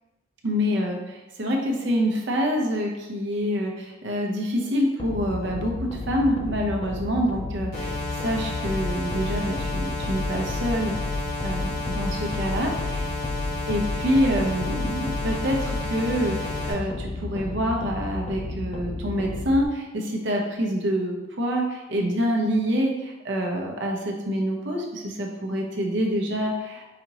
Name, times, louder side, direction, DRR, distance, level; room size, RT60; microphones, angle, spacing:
voice 1, 0.4-11.1 11.4-13.1 13.7-26.9, equal, 65° right, 0 dB, 0.7 m, -26 dB
sound 1, 5.0-19.6, left 3 dB, 30° left, 0.3 m, -32 dB
sound 2, 7.7-16.7, left 2 dB, 50° left, 1.3 m, -32 dB
5.0 x 2.8 x 2.9 m, 1.1 s
head